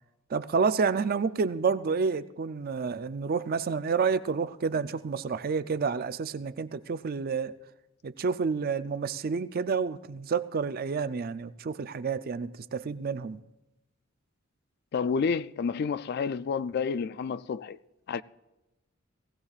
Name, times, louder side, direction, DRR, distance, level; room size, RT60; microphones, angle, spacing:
voice 1, 0.3-7.5 8.0-13.4, right 5 dB, 45° right, 0.4 m, -29 dB
voice 2, 14.9-17.8 18.1-18.2, left 5 dB, 50° left, 0.3 m, -29 dB
19.0 x 16.0 x 2.4 m
head